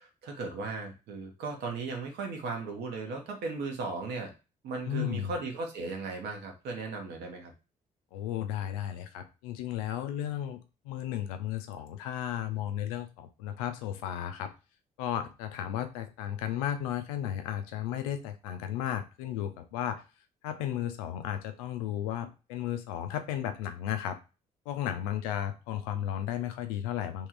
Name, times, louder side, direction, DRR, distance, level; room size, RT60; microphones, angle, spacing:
voice 1, 0.0-4.3 4.6-7.5, right 3 dB, 60° right, 2 dB, 1.2 m, -36 dB
voice 2, 4.9-5.3 8.1-10.6 10.8-14.5 15.0-20.0 20.4-24.2 24.7-27.3, left 11 dB, 70° left, 8 dB, 0.6 m, -34 dB
3.6 x 3.0 x 4.6 m, 0.30 s
figure-of-eight pair, 40°, 19 cm